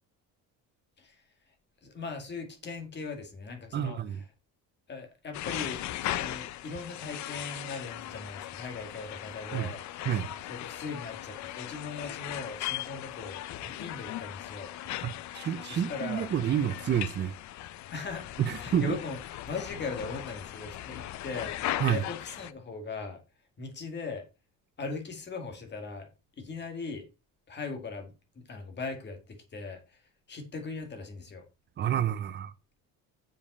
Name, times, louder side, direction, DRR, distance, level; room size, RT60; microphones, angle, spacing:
voice 1, 1.0-1.5 1.8-4.2 4.9-10.1 10.5-14.7 15.6-16.3 17.9-23.2 23.6-24.2 24.8-26.1 26.4-27.1 27.5-31.4, left 4 dB, 30° left, 2.1 m, -40 dB
voice 2, 3.7-4.2 9.5-9.7 10.1-10.3 15.3-17.3 18.4-19.0 21.8-22.0 31.8-32.5, right 10 dB, 30° right, 0.5 m, -29 dB
sound 1, 5.3-22.5, left 14 dB, 50° left, 0.5 m, -38 dB
7.1 x 5.3 x 5.3 m
cardioid pair, 155°, 36 cm